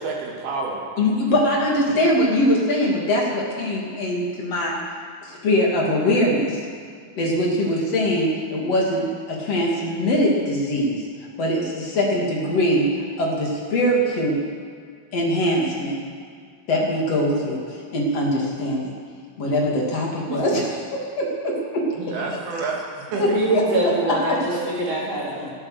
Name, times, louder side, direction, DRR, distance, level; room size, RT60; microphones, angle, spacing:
voice 1, 0.0-0.8 22.1-23.4, right 4 dB, 80° right, -1 dB, 4.1 m, -29 dB
voice 2, 1.0-4.8 5.4-6.6 7.2-11.0 11.4-12.9 13.2-14.4 15.1-16.0 16.7-18.9 19.4-21.9 23.2-23.3, left 1 dB, 45° left, -2 dB, 3.4 m, -22 dB
voice 3, 21.9-22.2 23.1-25.5, right 1 dB, 40° right, -5 dB, 4.1 m, -24 dB
23.5 x 8.6 x 6.6 m, 2.1 s
omnidirectional pair, 4.4 m